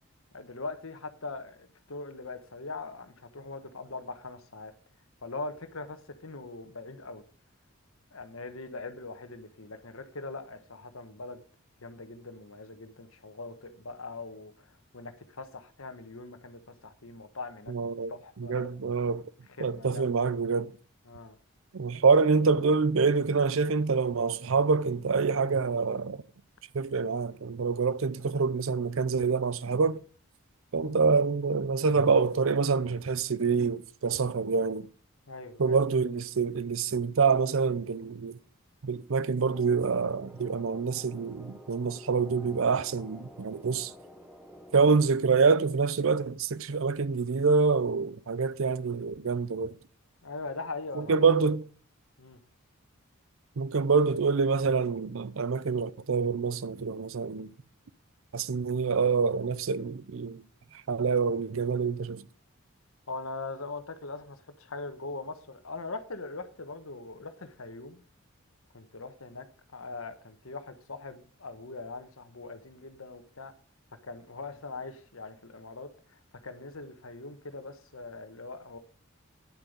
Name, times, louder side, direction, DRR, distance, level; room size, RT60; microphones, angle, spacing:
voice 1, 0.3-4.7 5.2-7.2 8.1-11.4 11.8-17.7 18.1-18.7 19.6-20.3 21.1-21.4 35.3-35.8 50.2-51.3 52.2-52.4 63.1-68.0 68.7-69.4 69.7-73.5 74.0-78.8, left 3 dB, 70° left, 1.3 m, -41 dB
voice 2, 17.7-18.1 18.4-19.2 19.6-20.7 21.7-26.2 26.7-30.0 30.7-34.9 35.6-38.4 38.8-43.9 44.7-49.7 50.9-51.6 53.6-57.5 58.3-60.4 60.9-62.2, right 5 dB, 65° right, 0.6 m, -26 dB
sound 1, 39.4-44.8, left 1 dB, 5° right, 0.9 m, -50 dB
9.8 x 7.6 x 5.1 m
head